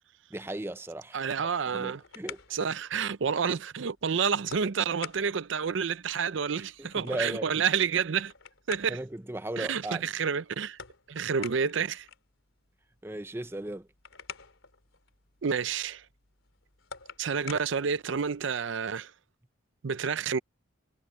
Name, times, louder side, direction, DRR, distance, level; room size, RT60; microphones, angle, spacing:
voice 1, 0.3-1.2 1.7-2.6 6.6-7.5 8.9-10.0 13.0-13.9, right 1 dB, 10° right, 0.6 m, -36 dB
voice 2, 1.1-2.0 2.5-8.3 8.7-9.0 9.6-10.8 11.1-12.1 15.4-16.0 17.2-19.1 19.8-20.4, right 6 dB, 70° right, 0.5 m, -29 dB
sound 1, 1.6-18.7, left 7 dB, 85° left, 3.6 m, -50 dB
head